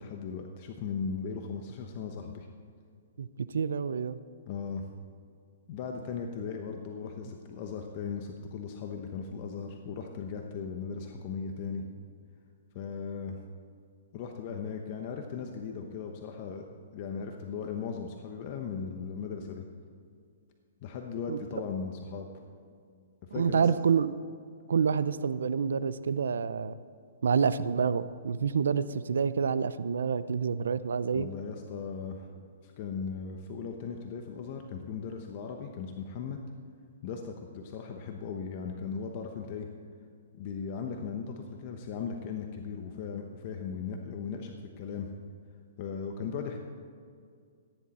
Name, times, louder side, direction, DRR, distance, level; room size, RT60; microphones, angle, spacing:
voice 1, 0.0-2.5 4.5-4.8 5.7-11.8 12.7-13.4 14.1-19.6 20.8-22.3 23.2-23.7 31.1-32.3 32.6-36.4 37.0-39.7 40.3-45.1 45.8-46.6, left 6 dB, 40° left, 3 dB, 0.9 m, -37 dB
voice 2, 3.2-4.2 21.3-21.5 23.3-24.2 24.7-26.7 27.2-31.3, right 6 dB, 85° right, 15 dB, 0.6 m, -28 dB
15.0 x 10.0 x 4.3 m, 2.3 s
hypercardioid pair, 155°, 0 cm